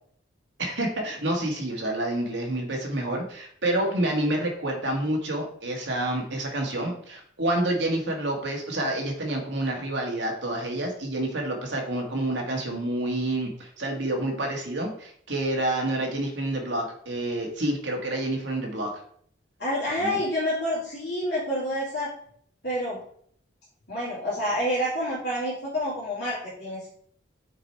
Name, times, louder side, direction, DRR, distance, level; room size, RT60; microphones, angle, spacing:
voice 1, 0.6-18.9 19.9-20.2, right 1 dB, 65° right, 1 dB, 1.6 m, -28 dB
voice 2, 19.6-22.1 22.6-23.0 23.9-26.9, equal, 55° left, -8 dB, 2.5 m, -28 dB
6.4 x 4.7 x 4.3 m, 0.62 s
head